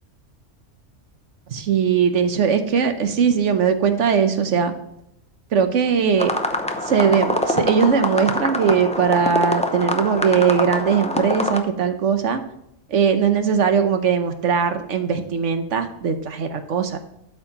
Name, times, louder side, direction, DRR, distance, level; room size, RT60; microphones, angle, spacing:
voice 1, 1.5-4.7 5.5-6.3 6.8-12.4 12.9-17.0, right 6 dB, 75° right, 8 dB, 1.2 m, -20 dB
sound 1, 6.2-11.6, left 1 dB, 10° left, 0.4 m, -24 dB
12.0 x 4.7 x 2.9 m, 0.79 s
omnidirectional pair, 1.3 m